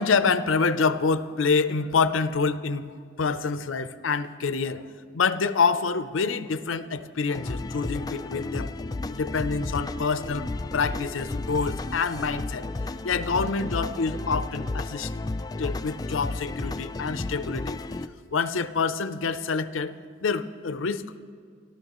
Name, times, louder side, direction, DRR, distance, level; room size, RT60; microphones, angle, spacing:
voice 1, 0.0-2.9 3.2-4.8 5.1-8.7 9.1-10.4 10.7-12.7 13.0-15.1 15.6-17.8 18.3-19.9 20.2-21.2, left 5 dB, 85° left, 13 dB, 0.6 m, -26 dB
sound 1, 7.3-18.1, left 2 dB, 20° left, 0.3 m, -33 dB
26.5 x 13.0 x 3.0 m, 2.2 s
head